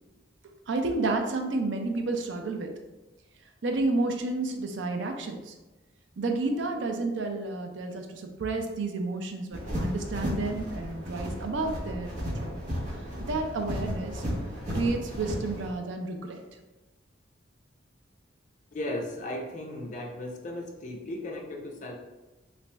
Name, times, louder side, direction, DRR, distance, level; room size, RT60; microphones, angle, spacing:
voice 1, 0.7-2.7 3.6-5.5 6.2-12.6 13.3-14.2 14.7-16.4, right 3 dB, 80° right, 4 dB, 0.5 m, -31 dB
sound 1, 9.5-15.7, equal, 40° right, 1.0 m, -34 dB
voice 2, 18.7-21.9, left 1 dB, 40° left, 1 dB, 0.5 m, -36 dB
3.0 x 2.6 x 3.3 m, 1.1 s
head